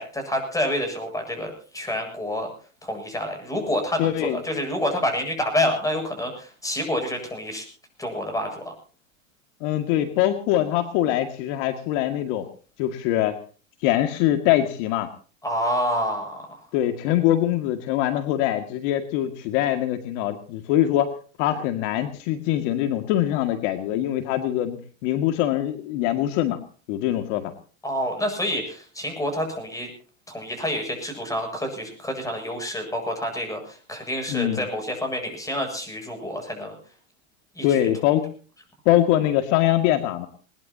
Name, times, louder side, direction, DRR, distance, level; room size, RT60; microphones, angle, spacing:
voice 1, 0.0-2.5 2.8-7.7 8.0-8.7 15.4-16.4 27.8-29.9 30.3-36.8 37.6-37.8, left 1 dB, 10° left, 4 dB, 7.6 m, -28 dB
voice 2, 4.0-4.4 9.6-12.4 12.8-13.4 13.8-15.1 16.7-21.1 21.4-26.6 26.9-27.5 34.3-34.7 37.6-38.3 38.9-40.3, left 12 dB, 60° left, 7 dB, 2.2 m, -23 dB
21.0 x 20.5 x 2.8 m, 0.39 s
hypercardioid pair, 115°, 41 cm